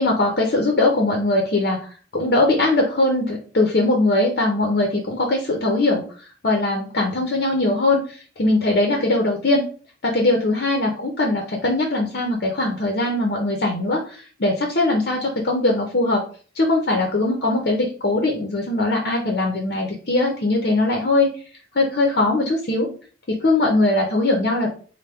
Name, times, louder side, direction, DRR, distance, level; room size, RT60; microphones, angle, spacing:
voice 1, 0.0-1.8 2.1-6.0 6.4-9.6 10.0-16.2 16.6-21.3 21.7-22.9 23.3-24.7, left 2 dB, 50° left, 1 dB, 0.7 m, -20 dB
4.3 x 2.2 x 3.4 m, 0.41 s
head